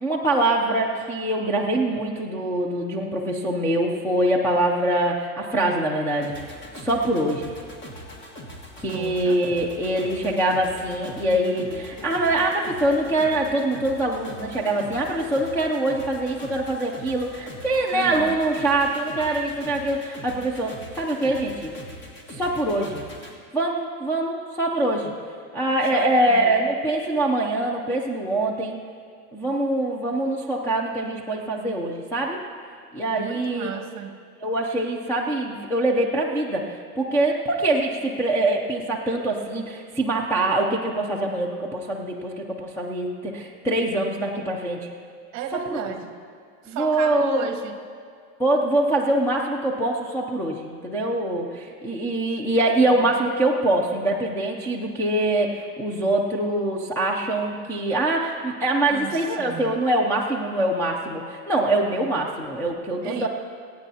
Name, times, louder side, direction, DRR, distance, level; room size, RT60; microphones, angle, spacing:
voice 1, 0.0-6.4 6.8-7.5 8.8-21.7 22.3-23.0 23.5-25.1 25.5-28.8 29.3-32.4 32.9-33.7 34.4-44.9 45.5-45.9 46.7-47.4 48.4-63.3, right 1 dB, 5° left, -6 dB, 0.4 m, -24 dB
sound 1, 6.2-23.4, left 1 dB, 25° left, 1.5 m, -41 dB
voice 2, 8.9-9.4 17.9-18.4 25.9-26.6 33.2-34.2 45.3-46.1 46.6-47.8 52.9-53.1 58.9-59.7 63.0-63.3, right 9 dB, 35° right, 7 dB, 1.0 m, -34 dB
25.0 x 9.1 x 2.8 m, 2.1 s
supercardioid pair, 145°, 46 cm